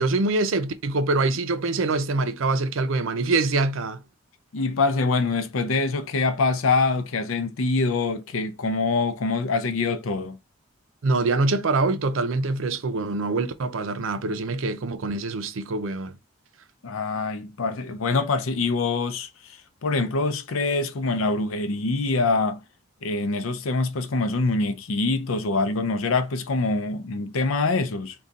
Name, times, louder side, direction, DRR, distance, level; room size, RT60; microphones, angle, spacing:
voice 1, 0.0-4.0 11.0-16.2, right 3 dB, 70° right, 0.5 m, -24 dB
voice 2, 4.5-10.4 16.8-19.3 19.8-22.6 23.0-28.1, left 3 dB, 80° left, 0.5 m, -24 dB
3.7 x 2.3 x 3.9 m
head